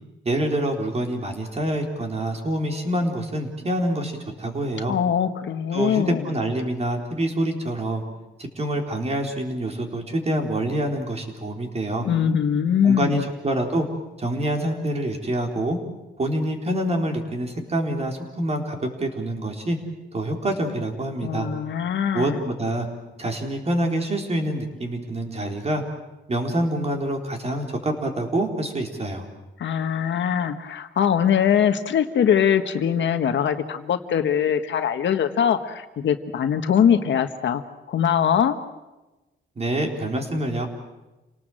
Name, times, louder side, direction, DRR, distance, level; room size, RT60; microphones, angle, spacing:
voice 1, 0.2-4.9 5.7-8.0 8.4-12.1 12.8-13.9 14.2-15.8 16.2-19.8 20.1-21.5 22.1-22.9 23.2-25.8 26.3-29.3 39.6-40.7, right 1 dB, 30° right, 3 dB, 3.8 m, -26 dB
voice 2, 4.9-6.3 12.0-13.2 21.2-22.4 29.6-37.6 37.9-38.6, left 8 dB, 70° left, 8 dB, 1.5 m, -22 dB
28.5 x 18.5 x 7.7 m, 1.1 s
cardioid pair, 120°, 20 cm